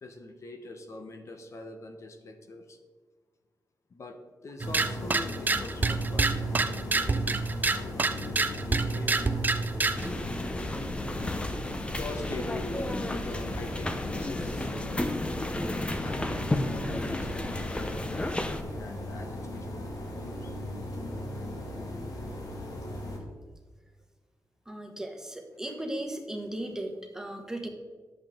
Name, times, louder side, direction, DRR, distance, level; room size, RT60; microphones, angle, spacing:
voice 1, 0.0-2.8 3.9-7.4 7.7-9.3 10.9-11.1 11.9-14.7 15.8-20.6 24.9-25.0 25.7-25.8, left 2 dB, 50° left, 5 dB, 1.0 m, -43 dB
sound 1, 4.6-23.2, left 1 dB, 75° left, 2.0 m, -38 dB
sound 2, 4.6-10.1, right 3 dB, 30° right, 0.5 m, -27 dB
sound 3, 10.0-18.6, left 1 dB, 15° left, 0.7 m, -33 dB
voice 2, 24.7-27.7, right 1 dB, 10° right, 2 dB, 1.3 m, -36 dB
10.0 x 8.2 x 3.6 m, 1.4 s
wide cardioid pair, 125°, 6 cm